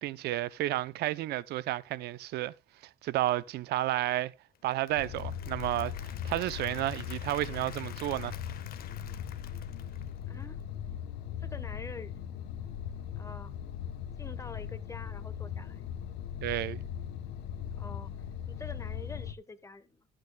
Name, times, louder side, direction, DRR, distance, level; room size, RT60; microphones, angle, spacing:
voice 1, 0.0-2.5 3.0-4.3 4.6-5.9 6.2-8.4 16.4-16.8, right 15 dB, 75° right, 0.6 m, -31 dB
Applause / Crowd, 4.6-10.6, left 10 dB, 60° left, 1.3 m, -50 dB
sound 1, 5.0-19.3, left 9 dB, 85° left, 0.9 m, -39 dB
voice 2, 10.3-10.6 11.4-12.2 13.2-13.5 14.2-15.9 17.7-20.1, left 3 dB, 20° left, 1.2 m, -46 dB
13.5 x 8.9 x 2.3 m
cardioid pair, 110°, 17 cm